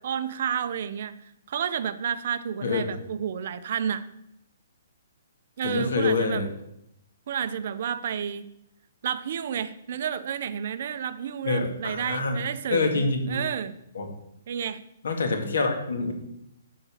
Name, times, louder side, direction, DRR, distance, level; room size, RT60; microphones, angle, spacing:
voice 1, 0.0-4.0 5.6-6.5 7.3-8.4 9.0-13.7 14.5-14.8, right 8 dB, 45° right, 12 dB, 0.6 m, -31 dB
voice 2, 2.6-3.0 5.6-6.5 11.4-12.4 12.7-13.5 13.9-14.1 15.0-16.1, left 3 dB, 75° left, 4 dB, 2.1 m, -26 dB
11.5 x 4.1 x 7.1 m, 0.80 s
hypercardioid pair, 165°, 0 cm